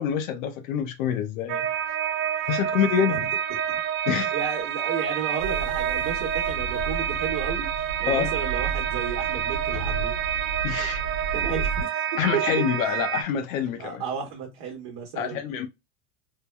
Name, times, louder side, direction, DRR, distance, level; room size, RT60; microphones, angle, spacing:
voice 1, 0.0-1.7 2.5-3.3 4.1-4.3 8.1-8.3 10.6-11.0 12.2-14.0 15.2-15.7, left 8 dB, 75° left, 0.6 m, -26 dB
sound 1, 1.5-13.2, right 9 dB, 85° right, 0.7 m, -28 dB
voice 2, 2.3-2.6 3.1-3.2 3.5-3.8 4.3-7.6 8.0-10.2 11.3-11.7 12.6-13.0 13.8-15.4, right 7 dB, 50° right, 1.0 m, -33 dB
sound 2, 5.4-11.8, right 4 dB, 15° right, 0.7 m, -34 dB
3.2 x 2.1 x 2.2 m
supercardioid pair, 130°, 40 cm